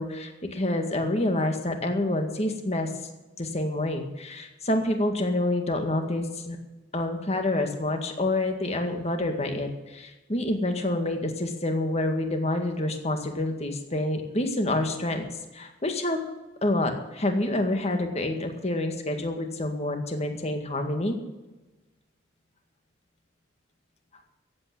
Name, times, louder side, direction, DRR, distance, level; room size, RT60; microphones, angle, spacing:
voice 1, 0.0-2.9 3.4-6.6 6.9-15.2 15.5-16.2 16.6-21.2, left 1 dB, 35° left, 5 dB, 1.9 m, -27 dB
15.0 x 8.5 x 9.5 m, 1.1 s
head